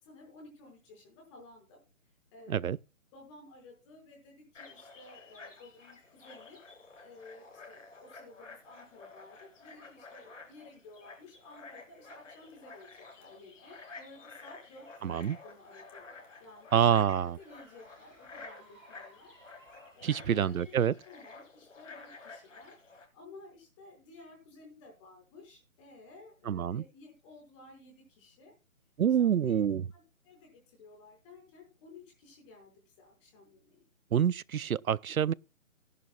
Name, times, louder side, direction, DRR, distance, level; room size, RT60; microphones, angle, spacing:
voice 1, 0.0-1.8 2.3-2.7 3.1-6.6 7.0-12.9 13.2-16.9 17.2-19.3 19.9-28.5 29.2-29.6 29.9-33.8, left 3 dB, 20° left, 5.3 m, -54 dB
sound 1, 4.5-23.1, left 4 dB, 65° left, 4.6 m, -51 dB
voice 2, 15.0-15.4 16.7-17.4 20.0-20.9 26.5-26.8 29.0-29.8 34.1-35.3, right 9 dB, 85° right, 0.6 m, -27 dB
sound 2, 16.0-20.2, right 1 dB, 5° right, 7.4 m, -61 dB
18.0 x 11.0 x 2.3 m
figure-of-eight pair, 150°, 41 cm